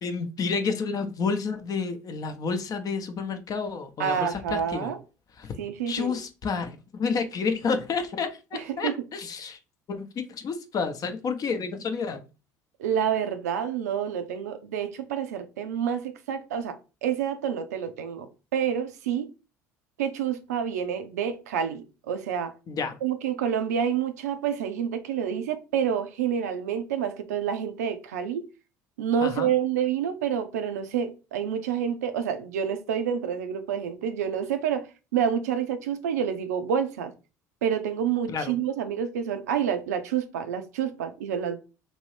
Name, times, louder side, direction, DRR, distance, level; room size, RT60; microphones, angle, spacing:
voice 1, 0.0-4.9 5.4-5.5 5.9-9.6 9.9-12.2 22.7-23.0 29.2-29.5 38.3-38.5, left 5 dB, 45° left, 0.6 m, -30 dB
voice 2, 4.0-5.0 5.6-6.2 8.5-9.0 12.8-19.3 20.0-22.5 23.0-28.5 29.0-37.1 37.6-41.6, right 8 dB, 85° right, 0.4 m, -28 dB
2.8 x 2.6 x 3.1 m
hypercardioid pair, 65°, 9 cm